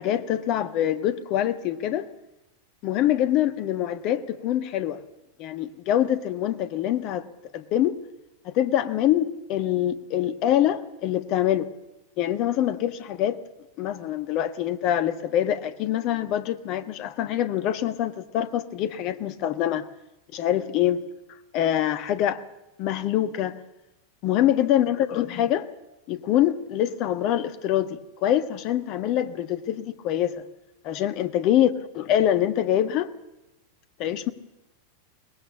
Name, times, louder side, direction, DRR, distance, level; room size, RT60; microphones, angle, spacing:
voice 1, 0.0-2.1 2.8-5.0 5.4-7.2 7.5-8.0 8.4-11.7 12.2-13.4 13.8-19.9 20.3-21.0 21.5-22.4 22.8-23.6 24.2-25.7 26.1-30.3 30.8-33.1 34.0-34.3, left 11 dB, 40° left, 12 dB, 1.4 m, -24 dB
23.0 x 19.5 x 7.2 m, 0.93 s
figure-of-eight pair, 90°, 0 cm